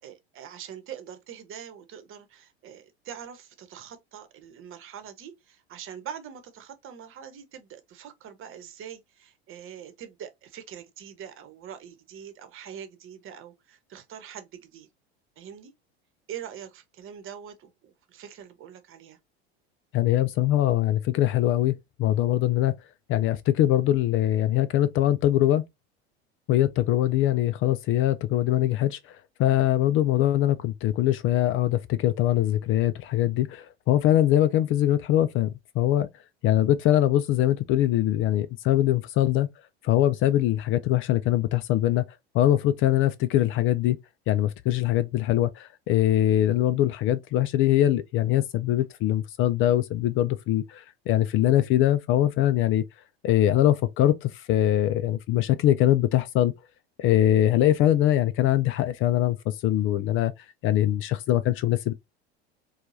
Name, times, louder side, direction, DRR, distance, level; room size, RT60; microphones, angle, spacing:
voice 1, 0.0-14.9 15.4-15.7 16.3-19.2, right 9 dB, 40° right, 1.0 m, -43 dB
voice 2, 19.9-22.7 23.1-25.6 26.5-36.1 36.4-39.5 39.8-42.0 42.3-44.0 44.3-52.8 53.2-56.5 57.0-60.3 60.6-61.9, left 13 dB, 40° left, 0.4 m, -22 dB
4.5 x 2.3 x 2.7 m
hypercardioid pair, 90°, 33 cm